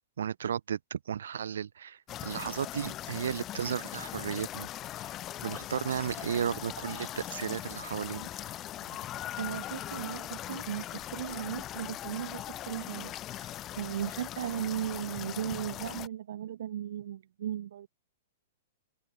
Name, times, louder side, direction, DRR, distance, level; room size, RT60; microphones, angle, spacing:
voice 1, 0.2-5.1 5.4-8.3, right 8 dB, 90° right, 4.4 m, -34 dB
sound 1, 2.1-16.1, left 13 dB, 20° left, 0.5 m, -40 dB
voice 2, 9.0-17.9, right 11 dB, 60° right, 2.8 m, -37 dB
hypercardioid pair, 175°, 0 cm